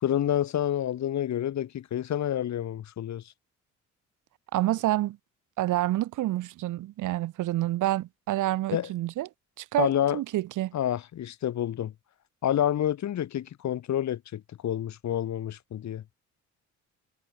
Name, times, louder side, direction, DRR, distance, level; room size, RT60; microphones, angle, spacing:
voice 1, 0.0-3.2 8.7-8.9 9.8-10.2 10.7-11.9 12.4-16.0, left 11 dB, 65° left, 2.6 m, -28 dB
voice 2, 4.5-5.2 5.6-9.3 9.6-10.8, right 15 dB, 85° right, 1.7 m, -28 dB
cardioid pair, 90°, 30 cm